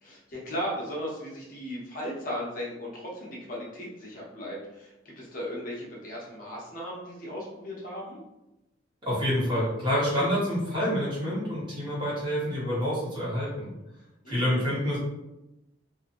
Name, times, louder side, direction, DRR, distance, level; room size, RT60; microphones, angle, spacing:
voice 1, 0.0-8.2 14.2-14.7, equal, 45° left, -5 dB, 0.7 m, -37 dB
voice 2, 9.0-13.7 14.3-15.0, equal, 25° right, -8 dB, 1.1 m, -27 dB
2.8 x 2.5 x 2.5 m, 0.96 s
head